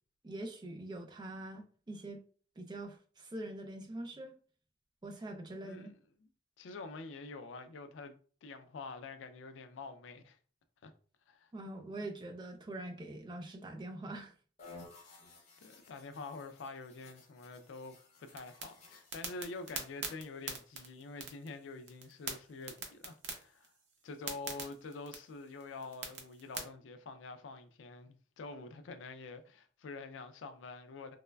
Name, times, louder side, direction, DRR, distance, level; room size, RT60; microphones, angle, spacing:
voice 1, 0.2-2.2 2.6-4.3 5.0-5.9 11.5-14.3, right 1 dB, 25° right, 0.3 m, -44 dB
voice 2, 5.6-5.9 6.6-8.2 8.4-10.4 10.8-10.9 11.3-11.5 15.6-23.7 24.0-31.2, left 3 dB, 85° left, 0.4 m, -47 dB
sound 1, 14.6-20.0, left 3 dB, 35° left, 0.7 m, -57 dB
sound 2, 18.3-26.6, right 5 dB, 70° right, 0.6 m, -45 dB
3.1 x 2.0 x 2.2 m
head